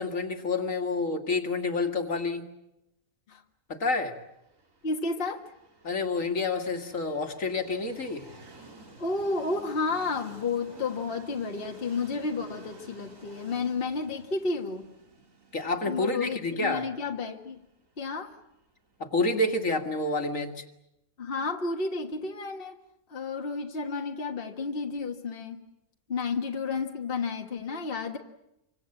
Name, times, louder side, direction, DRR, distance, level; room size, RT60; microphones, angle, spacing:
voice 1, 0.0-2.5 3.7-4.2 5.8-8.3 15.5-16.9 19.0-20.6, left 3 dB, 65° left, 5 dB, 2.3 m, -29 dB
Train, 4.4-20.2, right 2 dB, 65° right, 3.3 m, -52 dB
voice 2, 4.8-5.4 9.0-14.8 15.8-17.6 18.0-18.3 21.2-22.8 23.1-25.6 26.1-28.2, left 4 dB, 40° left, 3 dB, 1.7 m, -31 dB
26.5 x 25.0 x 7.8 m, 0.89 s
omnidirectional pair, 1.5 m